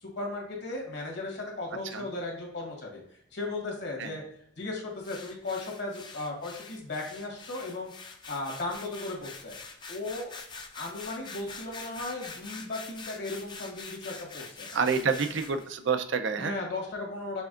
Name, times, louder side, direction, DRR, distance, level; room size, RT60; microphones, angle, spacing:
voice 1, 0.0-3.0 3.3-4.2 4.6-7.9 8.3-9.5 9.9-10.3 10.7-14.7 16.4-17.4, left 2 dB, 60° left, 0 dB, 1.5 m, -36 dB
sound 1, 5.0-15.7, left 4 dB, 25° left, 0.5 m, -45 dB
voice 2, 14.7-16.5, right 5 dB, 75° right, 8 dB, 0.5 m, -28 dB
6.1 x 3.4 x 2.5 m, 0.71 s
head